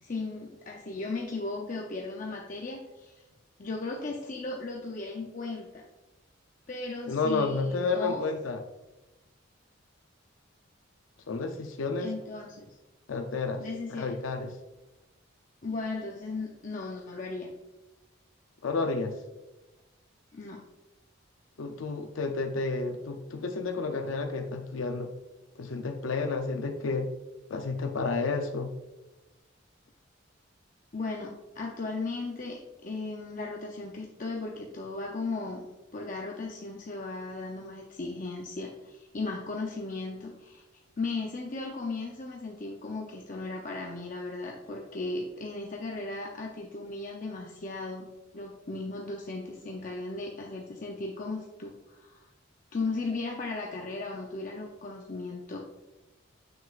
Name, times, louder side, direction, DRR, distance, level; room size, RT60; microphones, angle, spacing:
voice 1, 0.0-3.2 3.6-5.8 6.7-8.2 12.0-12.8 13.6-14.1 15.6-17.5 20.3-20.6 30.9-35.6 35.9-40.6 41.0-52.3 52.7-55.6, left 3 dB, 40° left, -1 dB, 0.6 m, -36 dB
voice 2, 7.1-8.6 11.3-12.1 13.1-13.6 13.9-14.6 18.6-19.2 21.6-25.1 25.6-27.1 27.5-28.7, left 3 dB, 85° left, 6 dB, 0.5 m, -31 dB
7.1 x 6.3 x 2.4 m, 1.1 s
head